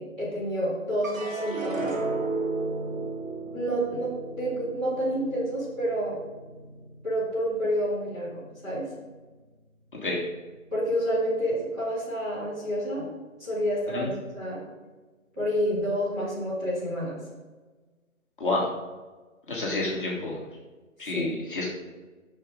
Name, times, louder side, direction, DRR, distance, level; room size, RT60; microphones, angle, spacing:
voice 1, 0.0-1.9 3.5-4.1 4.4-6.2 7.0-8.9 10.7-13.1 13.4-14.6 15.3-17.2 21.1-21.3, equal, 10° right, -14 dB, 2.4 m, -29 dB
sound 1, 1.0-7.5 7.9-8.6, right 3 dB, 75° right, 2.1 m, -34 dB
voice 2, 19.5-20.4 21.0-21.7, left 2 dB, 40° left, -4 dB, 1.5 m, -28 dB
7.3 x 6.1 x 4.8 m, 1.3 s
hypercardioid pair, 175°, 41 cm